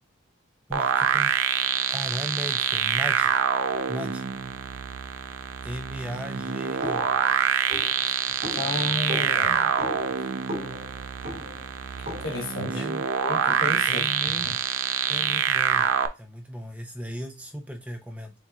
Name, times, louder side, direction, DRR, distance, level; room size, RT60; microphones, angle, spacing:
voice 1, 0.7-1.3 1.9-3.3 3.9-4.2 5.6-7.0 12.7-13.1 13.9-14.5 15.1-18.3, equal, 5° right, 0.6 m, -36 dB
sound 1, 0.7-16.1, right 8 dB, 85° right, 0.5 m, -26 dB
sound 2, 6.8-12.6, left 1 dB, 45° right, 1.9 m, -38 dB
voice 2, 8.5-9.7 12.2-12.8 13.2-14.1 14.4-14.5, left 2 dB, 85° left, 1.2 m, -31 dB
7.1 x 2.7 x 2.4 m
head